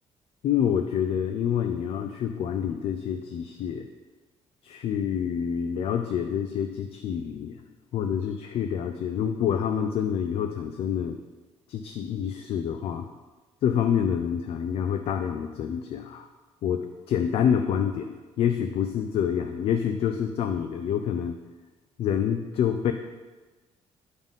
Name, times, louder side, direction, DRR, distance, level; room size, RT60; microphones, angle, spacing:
voice 1, 0.4-3.9 4.6-7.6 7.9-11.2 11.7-13.1 13.6-16.3 16.6-21.4 22.0-22.9, left 8 dB, 55° left, 6 dB, 0.4 m, -27 dB
8.8 x 3.9 x 3.6 m, 1.2 s
cardioid pair, 160°, 12 cm